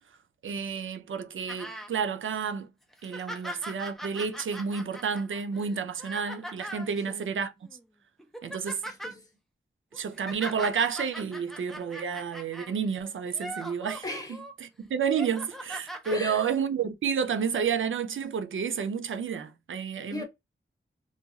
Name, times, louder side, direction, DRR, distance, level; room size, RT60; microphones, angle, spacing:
voice 1, 0.4-2.7 3.0-7.5 8.4-8.8 9.9-14.0 14.6-20.2, right 6 dB, 80° right, 0.4 m, -30 dB
sound 1, 1.5-1.9 2.4-2.5 2.9-6.9 7.6-7.8 8.2-9.1 9.9-12.7 13.2-14.5 15.0-16.2 17.1-17.2, right 1 dB, ahead, 0.6 m, -41 dB
voice 2, 7.1-7.5 8.5-9.3 14.0-14.4 16.1-16.6 20.1-20.2, left 1 dB, 20° left, 1.2 m, -38 dB
2.4 x 2.3 x 2.8 m
wide cardioid pair, 80°, 20 cm